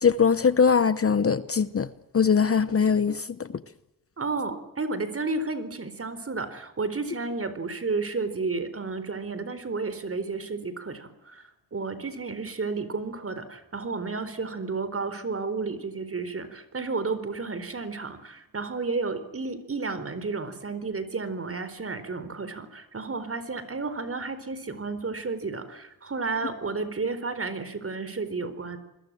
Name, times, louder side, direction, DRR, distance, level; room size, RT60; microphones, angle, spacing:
voice 1, 0.0-3.5, left 6 dB, 35° left, 0.9 m, -21 dB
voice 2, 4.2-11.4 11.7-28.8, right 4 dB, 35° right, 4.2 m, -32 dB
28.0 x 21.5 x 7.6 m
cardioid pair, 105°, 39 cm